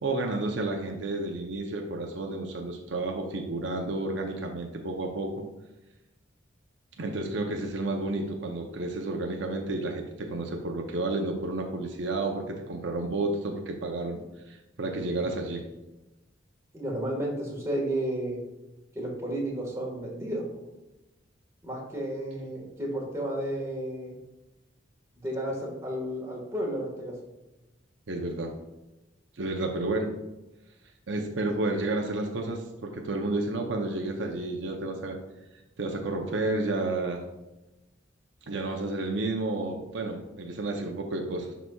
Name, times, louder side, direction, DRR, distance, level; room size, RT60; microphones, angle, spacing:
voice 1, 0.0-5.3 7.0-14.2 14.5-15.6 28.1-28.5 29.4-30.1 31.1-35.2 35.8-37.2 38.5-41.5, right 2 dB, 75° right, 2 dB, 0.7 m, -31 dB
voice 2, 16.7-18.4 18.9-20.4 21.6-24.1 25.2-27.2, right 1 dB, 15° right, -2 dB, 1.5 m, -32 dB
10.5 x 4.1 x 2.3 m, 1.0 s
head